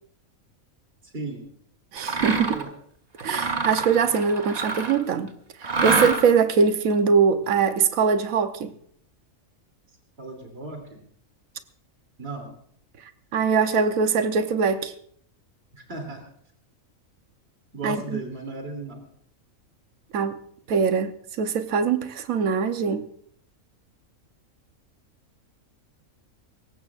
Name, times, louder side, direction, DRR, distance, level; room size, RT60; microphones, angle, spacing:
voice 1, 1.0-1.4 2.5-2.7 3.5-3.6 10.2-11.0 12.2-12.5 15.7-16.2 17.7-19.0, right 3 dB, 45° right, 3.2 m, -36 dB
voice 2, 1.9-2.6 3.2-5.3 5.6-8.7 13.3-14.9 17.8-18.2 20.1-20.3 20.7-23.1, right 6 dB, 80° right, 1.3 m, -22 dB
Mechanisms, 2.0-2.7 3.2-5.1 5.6-6.5, right 3 dB, 30° right, 1.3 m, -26 dB
22.5 x 18.5 x 2.5 m
omnidirectional pair, 1.4 m